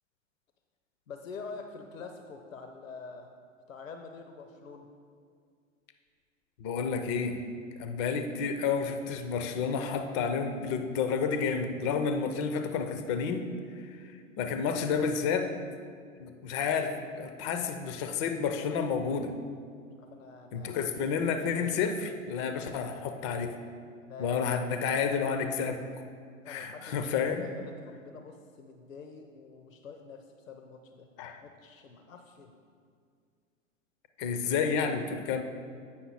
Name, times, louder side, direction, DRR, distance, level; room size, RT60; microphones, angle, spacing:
voice 1, 1.1-3.3 3.7-4.9 20.0-20.8 24.0-24.5 26.4-31.1 31.4-32.5, left 4 dB, 80° left, 5 dB, 0.7 m, -46 dB
voice 2, 6.6-7.4 7.7-13.5 13.8-15.5 16.2-19.3 20.5-23.6 24.2-25.8 26.5-27.4 31.2-31.4 34.2-35.4, left 6 dB, 25° left, 7 dB, 0.4 m, -30 dB
8.4 x 5.5 x 4.1 m, 2.2 s
figure-of-eight pair, 100°, 39 cm